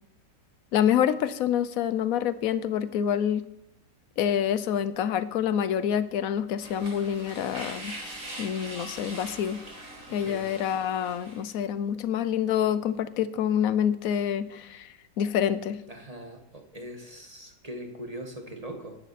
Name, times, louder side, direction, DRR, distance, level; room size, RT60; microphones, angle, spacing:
voice 1, 0.7-3.4 4.2-7.9 8.4-9.6 10.1-15.8, left 9 dB, 65° left, 14 dB, 0.9 m, -27 dB
sound 1, 6.6-11.5, right 1 dB, 50° right, 4.5 m, -42 dB
voice 2, 10.1-10.4 15.9-19.0, right 1 dB, 20° right, 3 dB, 1.4 m, -41 dB
15.5 x 11.5 x 4.2 m, 0.85 s
omnidirectional pair, 2.0 m